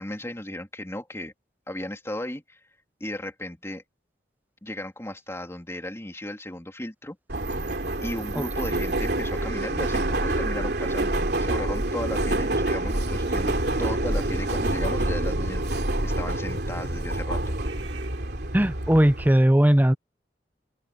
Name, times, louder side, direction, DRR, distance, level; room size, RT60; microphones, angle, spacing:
voice 1, 0.0-1.3 1.7-2.6 3.0-3.8 4.6-7.2 8.0-17.4, left 1 dB, 15° left, 3.0 m, -35 dB
Subway metro underground, 7.3-19.3, right 1 dB, 65° right, 3.0 m, -27 dB
voice 2, 18.5-19.9, equal, 10° right, 0.7 m, -18 dB
open air
head